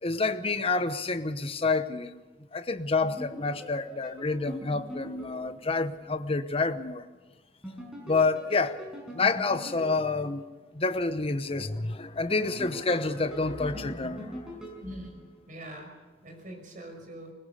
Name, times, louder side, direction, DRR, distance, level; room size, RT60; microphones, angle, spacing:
voice 1, 0.0-2.1 2.5-7.0 8.1-8.8 9.1-10.5 10.7-14.6, left 3 dB, 35° left, 1.0 m, -28 dB
sound 1, 3.0-6.1 7.6-10.8 12.3-15.7, equal, 5° right, 5.5 m, -43 dB
voice 2, 14.8-15.9 16.2-17.3, right 1 dB, 50° right, 5.4 m, -43 dB
20.5 x 20.5 x 6.7 m
head